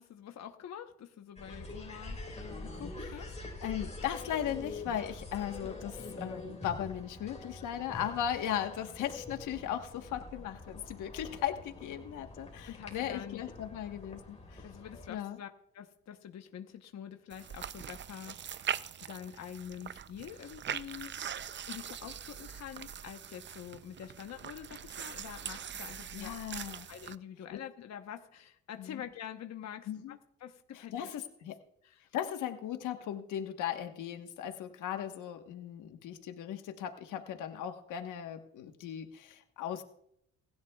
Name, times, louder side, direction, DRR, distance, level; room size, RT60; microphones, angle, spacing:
voice 1, 0.0-2.2 2.6-3.3 12.7-13.4 14.6-15.5 15.7-18.7 19.1-21.2 21.7-26.3 26.9-30.9 31.8-32.1, left 9 dB, 60° left, 5 dB, 1.1 m, -46 dB
sound 1, 1.4-15.1, left 2 dB, 20° left, 4.2 m, -45 dB
voice 2, 3.6-14.6 15.1-15.4 26.1-26.9 27.5-27.6 28.8-29.0 29.9-30.2 30.7-31.6 32.1-39.8, left 10 dB, 85° left, 6 dB, 1.3 m, -37 dB
sound 2, 17.3-27.2, right 8 dB, 40° right, 0.5 m, -42 dB
27.5 x 11.0 x 2.4 m, 0.74 s
cardioid pair, 90°, 30 cm